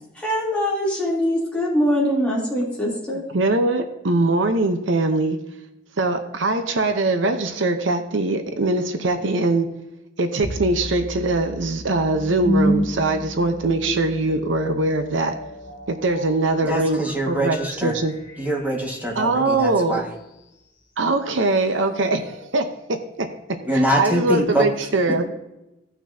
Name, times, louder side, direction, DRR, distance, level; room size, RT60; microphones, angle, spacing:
voice 1, 0.1-3.3, equal, 5° left, -6 dB, 3.1 m, -23 dB
voice 2, 3.3-5.4 6.0-9.7 10.2-15.3 15.9-17.6 17.8-18.1 19.2-20.0 21.0-23.3 24.0-25.3, right 2 dB, 80° right, 7 dB, 0.8 m, -22 dB
sound 1, 10.4-19.5, equal, 85° left, 1.8 m, -30 dB
voice 3, 16.6-18.0 18.4-20.1 23.6-24.7, right 1 dB, 10° right, -1 dB, 1.7 m, -24 dB
16.5 x 6.0 x 2.8 m, 0.92 s
head